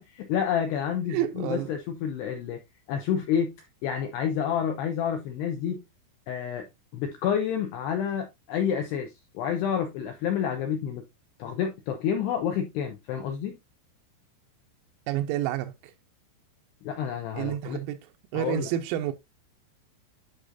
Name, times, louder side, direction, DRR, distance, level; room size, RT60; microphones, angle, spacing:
voice 1, 0.0-2.6 2.9-3.6 3.8-5.8 6.3-6.7 6.9-11.0 11.4-13.6 16.8-17.8 18.3-18.7, left 8 dB, 80° left, 2.4 m, -29 dB
voice 2, 1.1-1.7 15.1-15.9 17.3-18.0 18.3-19.1, right 12 dB, 85° right, 3.4 m, -29 dB
11.5 x 5.0 x 2.6 m
omnidirectional pair, 5.9 m